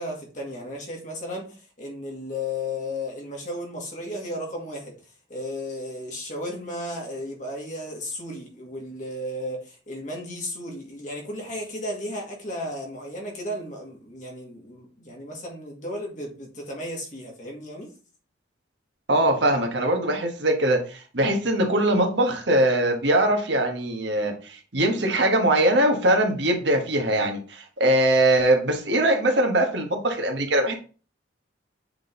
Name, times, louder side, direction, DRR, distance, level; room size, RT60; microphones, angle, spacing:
voice 1, 0.0-4.9 5.3-17.9, left 1 dB, 40° left, 2.0 m, -34 dB
voice 2, 19.1-30.8, right 1 dB, 65° right, 1.4 m, -22 dB
7.7 x 3.8 x 3.8 m
head